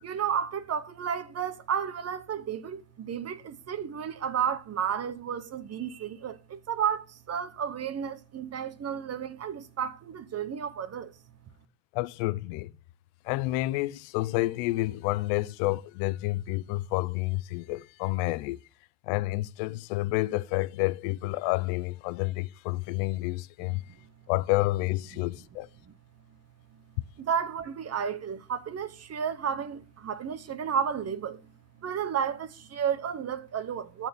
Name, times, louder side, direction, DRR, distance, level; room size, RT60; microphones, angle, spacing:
voice 1, 0.0-11.1 23.7-23.8 27.2-31.4 31.8-34.1, right 8 dB, 30° right, 1.0 m, -32 dB
voice 2, 11.9-12.7 13.2-18.6 19.0-23.8 24.3-25.7, left 19 dB, 75° left, 0.7 m, -29 dB
13.0 x 4.5 x 6.8 m
cardioid pair, 120°, 49 cm